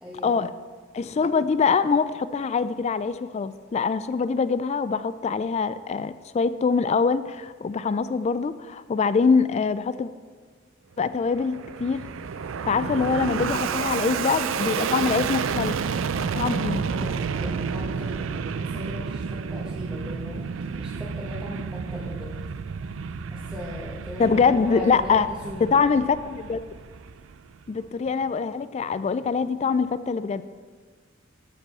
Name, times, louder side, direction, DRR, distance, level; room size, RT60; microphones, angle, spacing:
voice 1, 0.0-0.3 12.8-13.9 16.3-20.5 20.8-22.4 23.3-25.8, left 1 dB, 5° right, -7 dB, 1.3 m, -39 dB
voice 2, 0.9-10.1 11.0-12.0 12.7-15.8 16.4-16.8 24.2-25.3 25.7-26.6 27.7-30.4, left 5 dB, 35° left, 14 dB, 0.3 m, -24 dB
Fixed-wing aircraft airplane, 11.1-27.7, right 6 dB, 80° right, 0.4 m, -30 dB
13.5 x 5.3 x 6.1 m, 1.5 s
head